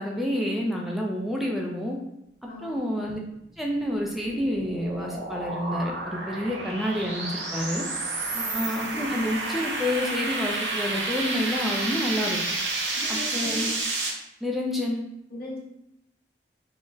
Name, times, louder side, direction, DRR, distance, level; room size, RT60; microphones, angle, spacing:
voice 1, 0.0-2.0 2.6-3.2 3.6-7.9 8.5-12.4 13.1-13.7 14.4-15.0, left 1 dB, ahead, -1 dB, 0.3 m, -28 dB
voice 2, 2.5-2.9 8.3-8.7 12.9-13.7 15.3-15.6, left 1 dB, 55° left, -4 dB, 0.8 m, -39 dB
sound 1, 3.5-14.1, right 2 dB, 85° right, 0.6 m, -30 dB
2.3 x 2.1 x 3.7 m, 0.83 s
head